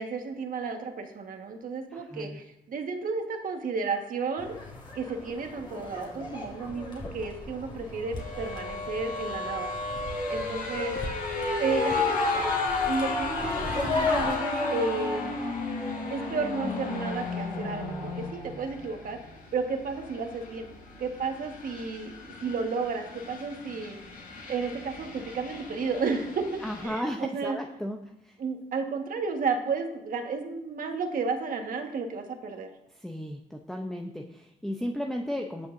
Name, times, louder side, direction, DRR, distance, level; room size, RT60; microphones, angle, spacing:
voice 1, 0.0-4.6 4.9-9.7 10.3-11.2 11.6-12.5 12.8-15.4 16.1-19.2 19.5-20.7 21.0-24.0 24.5-27.6 28.4-32.7, right 4 dB, 55° right, 4 dB, 1.6 m, -32 dB
voice 2, 1.9-2.4 26.6-28.4 33.0-35.7, equal, ahead, 2 dB, 0.7 m, -35 dB
sound 1, 4.4-14.4, left 3 dB, 30° left, 2.7 m, -36 dB
sound 2, 8.2-26.8, left 3 dB, 55° left, 4.2 m, -33 dB
18.5 x 6.7 x 2.7 m, 0.85 s
cardioid pair, 100°, 17 cm